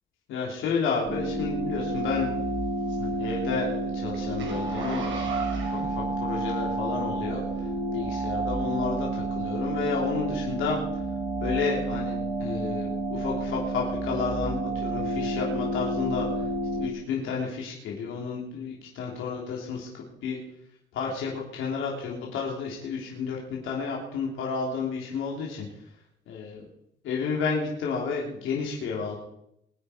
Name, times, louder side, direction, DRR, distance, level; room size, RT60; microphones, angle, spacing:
voice 1, 0.3-2.4 3.0-5.3 6.2-7.4 7.9-10.8 11.4-16.3 16.7-20.4 20.9-25.7 26.3-26.7 27.0-29.2, left 5 dB, 90° left, -2 dB, 3.5 m, -31 dB
sound 1, 1.0-16.9, right 2 dB, 25° right, 5.1 m, -30 dB
Zipper (clothing), 2.0-7.0 7.5-7.7, right 4 dB, 70° right, 5.3 m, -39 dB
22.5 x 9.8 x 5.2 m, 0.78 s
cardioid pair, 90°, 20 cm